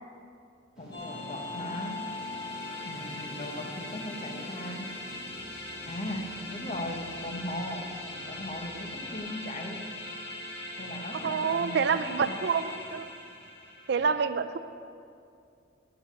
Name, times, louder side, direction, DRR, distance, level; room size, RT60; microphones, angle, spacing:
voice 1, 0.8-2.0 2.8-4.9 5.8-7.9 8.3-9.9 10.8-12.4 14.0-14.3, left 1 dB, 35° left, 3 dB, 1.0 m, -38 dB
sound 1, 0.8-9.2, left 1 dB, 5° right, 2.4 m, -48 dB
sound 2, 0.9-14.0, left 2 dB, 60° left, 1.7 m, -40 dB
voice 2, 11.2-13.1 13.9-14.6, right 6 dB, 60° right, 12 dB, 0.4 m, -27 dB
11.0 x 5.5 x 8.5 m, 2.4 s
head